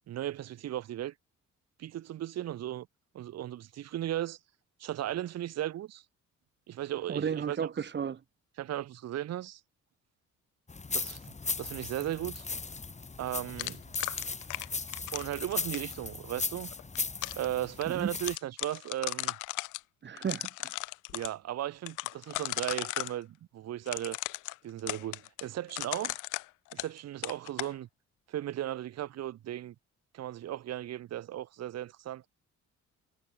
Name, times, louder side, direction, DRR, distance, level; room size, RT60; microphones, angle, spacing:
voice 1, 0.1-1.1 1.8-2.9 3.1-4.4 4.8-6.0 6.7-7.7 8.6-9.6 10.9-12.5 13.2-13.8 15.1-16.7 17.4-19.4 21.1-24.2 24.6-26.2 26.7-27.9 28.3-29.7 30.1-32.3, right 12 dB, 60° right, 0.8 m, -36 dB
voice 2, 7.1-8.2 17.9-18.1 20.0-20.7, right 7 dB, 35° right, 1.1 m, -33 dB
sound 1, 10.7-18.4, left 4 dB, 25° left, 2.0 m, -37 dB
sound 2, 13.6-15.9 16.7-17.5 17.8-17.9 18.2-19.8 20.2-21.3 21.9-23.2 23.9-27.0 27.2-27.7, left 20 dB, 85° left, 0.5 m, -36 dB
cardioid pair, 90°, 30 cm